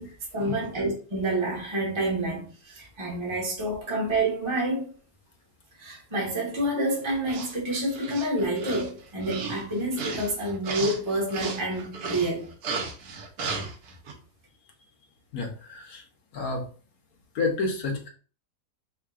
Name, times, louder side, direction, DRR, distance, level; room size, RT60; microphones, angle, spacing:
voice 1, 0.0-4.9 5.8-12.5, right 1 dB, 20° right, 1.3 m, -28 dB
sound 1, 6.9-14.1, right 4 dB, 70° right, 1.3 m, -35 dB
voice 2, 15.3-16.0 16.3-16.6 17.3-18.1, left 3 dB, 60° left, 1.4 m, -29 dB
4.3 x 3.7 x 2.4 m
omnidirectional pair, 1.8 m